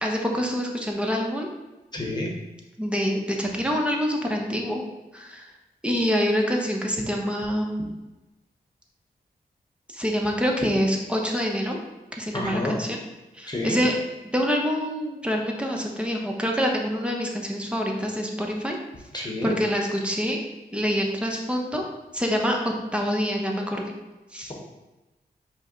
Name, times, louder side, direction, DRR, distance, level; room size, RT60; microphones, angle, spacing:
voice 1, 0.0-1.5 2.8-4.8 5.1-5.5 5.8-7.8 9.9-11.8 12.2-13.0 13.3-14.0 14.3-18.8 19.2-20.4 20.7-21.8 22.1-23.8 24.3-24.5, equal, 5° right, 0 dB, 0.8 m, -26 dB
voice 2, 1.9-2.3 12.3-12.7 13.5-13.8 19.1-19.5, left 1 dB, 25° left, -1 dB, 1.1 m, -29 dB
4.9 x 2.2 x 3.8 m, 1.1 s
cardioid pair, 50°, 17 cm